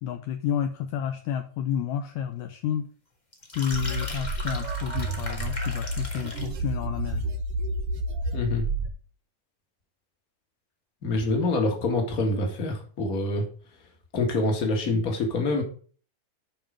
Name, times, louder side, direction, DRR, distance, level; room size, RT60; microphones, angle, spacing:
voice 1, 0.0-2.9 3.5-7.3, left 9 dB, 80° left, 7 dB, 1.7 m, -30 dB
sound 1, 3.3-6.6, left 1 dB, 55° left, 0.4 m, -38 dB
sound 2, 3.7-8.9, right 1 dB, 85° right, 1.3 m, -30 dB
voice 2, 8.3-8.6 11.0-13.4 14.1-15.6, left 2 dB, 30° left, 3 dB, 1.9 m, -26 dB
8.9 x 5.4 x 5.1 m, 0.41 s
omnidirectional pair, 4.1 m